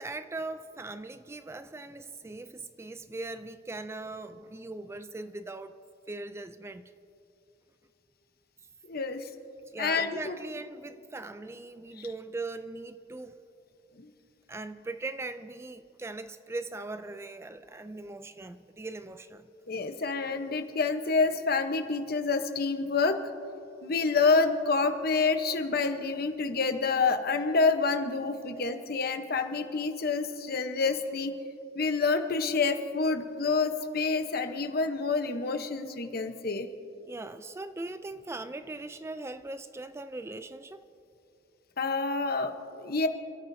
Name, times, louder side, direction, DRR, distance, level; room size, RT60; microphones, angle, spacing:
voice 1, 0.0-5.7 6.1-6.9 9.7-13.4 14.5-19.5 37.1-40.8, right 2 dB, 15° right, 11 dB, 0.3 m, -40 dB
voice 2, 8.9-9.3 9.8-10.4 12.0-12.1 14.0-14.1 19.7-23.2 23.8-31.3 31.7-36.7 41.8-42.5 42.8-43.1, left 4 dB, 55° left, 7 dB, 1.0 m, -28 dB
28.5 x 13.0 x 2.7 m, 2.7 s
head